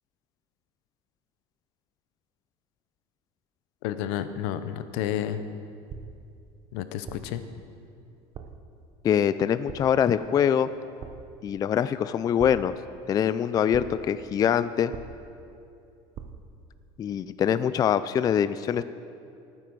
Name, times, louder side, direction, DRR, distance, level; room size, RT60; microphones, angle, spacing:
voice 1, 3.8-5.4 6.7-7.4, left 11 dB, 80° left, 11 dB, 0.8 m, -31 dB
sound 1, 5.9-6.4 7.1-7.5 8.3-8.7 9.7-10.1 11.0-11.4 12.4-12.9 13.7-14.2 14.9-15.5 16.1-16.6, right 7 dB, 40° right, 0.8 m, -42 dB
voice 2, 9.0-10.7 11.4-12.7 13.1-14.9 17.0-18.8, left 8 dB, 30° left, 14 dB, 0.3 m, -24 dB
18.0 x 9.0 x 4.7 m, 2.6 s
cardioid pair, 125°, 13 cm